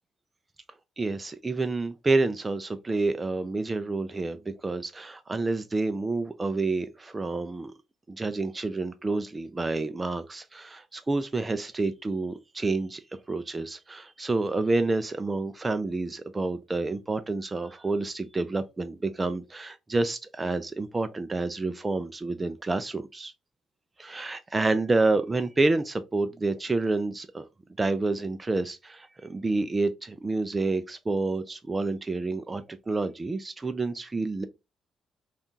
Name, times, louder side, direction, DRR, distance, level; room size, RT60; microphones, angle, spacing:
voice 1, 1.0-7.7 8.1-13.0 13.3-23.3 24.0-27.4 27.8-34.4, right 3 dB, 20° right, 0.4 m, -29 dB
5.4 x 2.4 x 2.7 m
cardioid pair, 90°, 0 cm